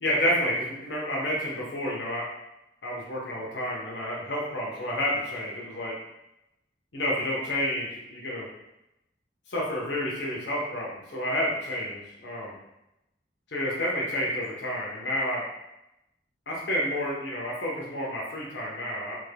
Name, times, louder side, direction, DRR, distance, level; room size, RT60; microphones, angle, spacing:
voice 1, 0.0-2.2 2.8-5.9 6.9-8.5 9.5-12.5 13.5-15.4 16.5-19.2, equal, 80° left, -5 dB, 0.9 m, -30 dB
3.5 x 2.2 x 3.3 m, 0.88 s
head